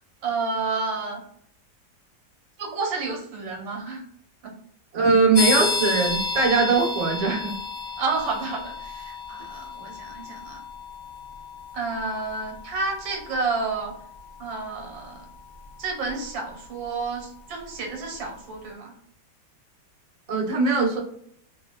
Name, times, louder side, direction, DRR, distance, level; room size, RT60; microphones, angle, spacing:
voice 1, 0.2-1.2 2.6-4.0 4.4-4.5 8.0-10.6 11.7-13.9 14.4-15.2 15.8-18.9, right 3 dB, 80° right, 2 dB, 1.6 m, -30 dB
voice 2, 4.9-7.5 20.3-21.0, right 4 dB, 45° right, -3 dB, 0.5 m, -21 dB
sound 1, 5.3-17.9, left 4 dB, 90° left, 0.6 m, -33 dB
3.6 x 2.3 x 2.2 m, 0.67 s
omnidirectional pair, 2.1 m